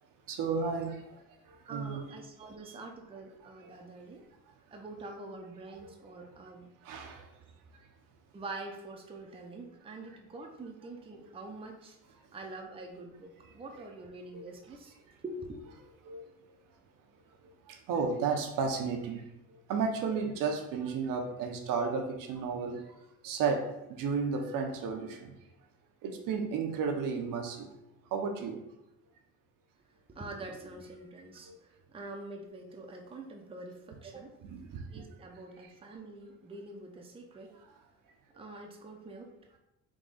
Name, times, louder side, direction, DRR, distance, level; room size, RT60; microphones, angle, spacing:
voice 1, 0.3-2.0 2.7-2.8 3.4-3.8 5.8-5.9 6.8-7.4 7.7-7.9 11.2-11.3 13.4-13.8 14.3-14.4 15.1-15.2 16.0-16.2 17.4-22.9 23.2-25.3 26.0-27.7 28.1-28.6 31.4-31.6 34.4-35.0 35.6-35.7 37.6-37.8, right 5 dB, 65° right, 3 dB, 0.7 m, -34 dB
voice 2, 1.7-4.2 4.7-6.7 8.3-12.0 12.3-14.9 15.2-15.6 30.1-31.5 31.9-34.3 34.9-37.5 38.3-39.3, right 2 dB, 15° right, 1 dB, 0.6 m, -45 dB
3.6 x 2.3 x 3.9 m, 0.90 s
supercardioid pair, 90°, 35 cm